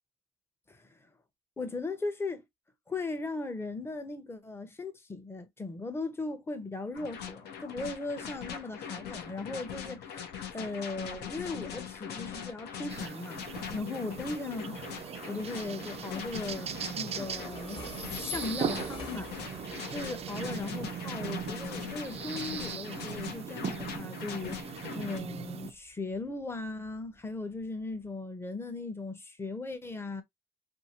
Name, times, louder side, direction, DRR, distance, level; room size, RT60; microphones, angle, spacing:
voice 1, 1.6-2.4 2.9-10.0 10.5-13.4 13.7-16.7 17.0-17.8 18.1-19.3 19.9-24.6 24.9-30.2, left 3 dB, 15° left, 0.7 m, -38 dB
sound 1, 6.9-25.2, left 8 dB, 75° left, 0.8 m, -42 dB
sound 2, 12.9-25.7, right 8 dB, 35° right, 0.4 m, -39 dB
Train, 13.9-28.1, left 3 dB, 30° left, 1.2 m, -49 dB
2.7 x 2.7 x 2.7 m
cardioid pair, 110°, 17 cm